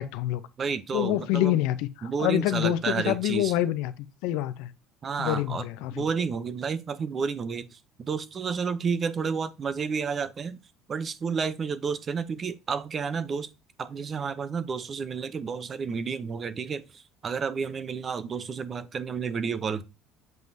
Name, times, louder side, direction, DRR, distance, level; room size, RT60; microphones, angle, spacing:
voice 1, 0.0-0.4 0.9-3.9 4.2-4.7 5.2-6.1, left 14 dB, 80° left, 0.5 m, -26 dB
voice 2, 0.6-1.6 2.0-3.5 5.0-10.6 10.9-13.5 13.8-19.8, right 5 dB, 30° right, 0.6 m, -31 dB
7.6 x 5.3 x 2.7 m
cardioid pair, 130°, 0 cm